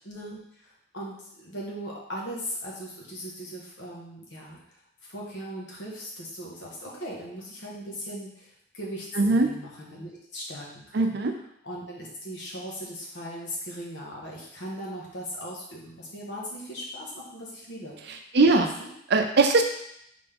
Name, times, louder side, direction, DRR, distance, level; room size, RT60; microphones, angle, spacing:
voice 1, 0.0-4.6 5.0-9.1 9.3-11.2 11.6-17.9 18.8-18.9, equal, 65° left, -4 dB, 1.3 m, -39 dB
voice 2, 9.2-9.5 10.9-11.3 18.3-18.8 19.1-19.6, right 3 dB, 60° right, 5 dB, 0.5 m, -20 dB
4.2 x 3.6 x 3.5 m, 0.73 s
head